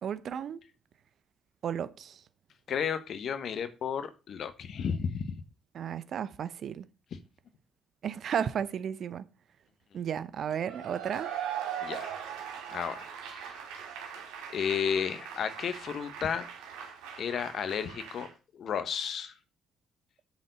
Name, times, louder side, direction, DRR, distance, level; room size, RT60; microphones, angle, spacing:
voice 1, 0.0-0.6 1.6-2.2 5.7-6.9 8.0-9.3 9.9-11.3, right 8 dB, 60° right, 0.6 m, -33 dB
voice 2, 2.7-5.4 11.8-12.1 12.7-13.5 14.5-16.5 17.2-19.3, left 7 dB, 65° left, 1.2 m, -33 dB
Cheering / Applause / Crowd, 10.6-18.3, right 8 dB, 90° right, 2.0 m, -40 dB
8.2 x 4.1 x 6.8 m
supercardioid pair, 65°, 0 cm